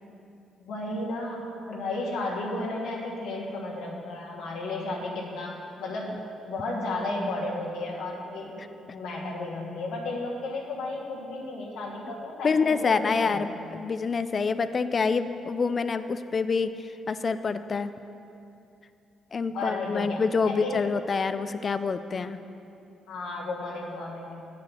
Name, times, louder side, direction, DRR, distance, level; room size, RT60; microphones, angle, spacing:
voice 1, 0.6-6.2 6.5-13.5 19.5-21.0 23.1-24.4, left 2 dB, 85° left, -3 dB, 1.4 m, -33 dB
voice 2, 12.4-17.9 19.3-22.4, left 5 dB, 40° left, 12 dB, 0.4 m, -27 dB
8.6 x 4.8 x 6.9 m, 2.7 s
cardioid pair, 90°, 0 cm